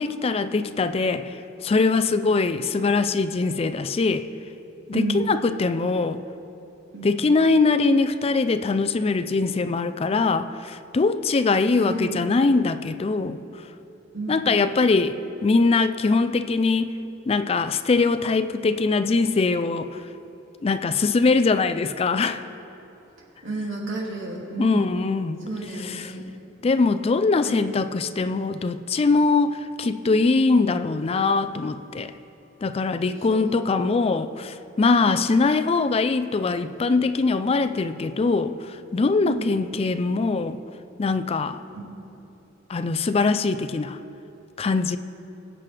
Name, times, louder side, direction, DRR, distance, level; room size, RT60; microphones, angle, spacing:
voice 1, 0.0-4.3 4.9-6.2 7.0-13.4 14.3-16.9 17.3-20.0 20.6-22.4 24.6-25.5 25.8-26.1 26.6-32.1 32.6-40.6 41.0-41.6 42.7-44.0 44.6-45.0, left 3 dB, 30° left, 11 dB, 0.4 m, -22 dB
voice 2, 4.9-5.2 6.9-7.2 11.8-12.2 14.1-14.5 23.4-24.9 25.5-26.3 27.4-27.6 33.3-33.6 34.9-35.3 39.2-39.5 41.7-41.8, right 2 dB, 85° right, -3 dB, 2.4 m, -31 dB
23.0 x 7.6 x 3.3 m, 2.9 s
head